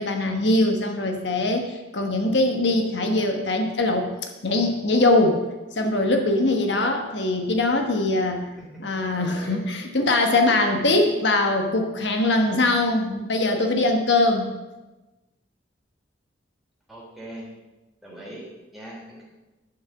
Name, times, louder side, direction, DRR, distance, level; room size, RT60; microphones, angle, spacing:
voice 1, 0.0-5.4 5.7-8.4 8.8-14.5, left 2 dB, 75° left, 4 dB, 1.2 m, -22 dB
voice 2, 9.2-9.6 10.7-11.1 16.9-17.5 18.0-19.2, right 1 dB, ahead, -5 dB, 3.1 m, -41 dB
11.0 x 6.0 x 7.1 m, 1.1 s
head